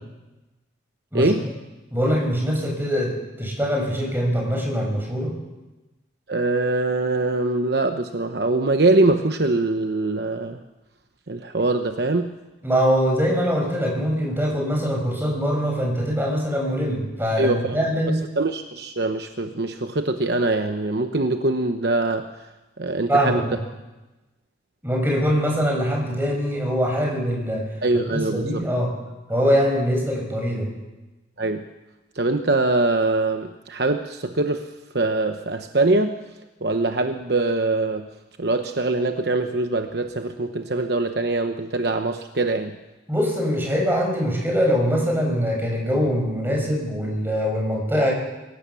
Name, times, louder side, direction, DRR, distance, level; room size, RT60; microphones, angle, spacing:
voice 1, 1.1-1.4 1.9-5.3 12.6-18.2 23.1-23.6 24.8-27.7 28.1-28.9 29.3-30.7 43.1-48.1, equal, 10° right, 0 dB, 5.8 m, -23 dB
voice 2, 6.3-10.6 11.3-12.3 17.4-17.8 18.4-22.3 22.8-23.4 27.8-28.7 31.4-31.6 32.2-34.7 34.9-36.2 36.6-38.1 38.4-42.8, right 2 dB, 55° right, 7 dB, 1.0 m, -23 dB
24.5 x 16.5 x 7.1 m, 1.1 s
head